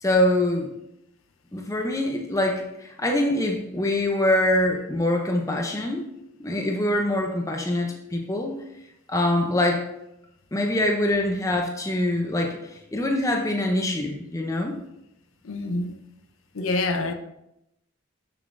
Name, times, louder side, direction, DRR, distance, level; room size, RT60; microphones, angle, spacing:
voice 1, 0.0-0.7 1.5-6.1 6.4-8.6 9.1-9.8 10.5-14.8, left 1 dB, 15° left, 0.5 m, -24 dB
voice 2, 15.4-16.0 16.5-17.1, left 2 dB, 75° left, 0.5 m, -26 dB
7.0 x 6.7 x 2.5 m
head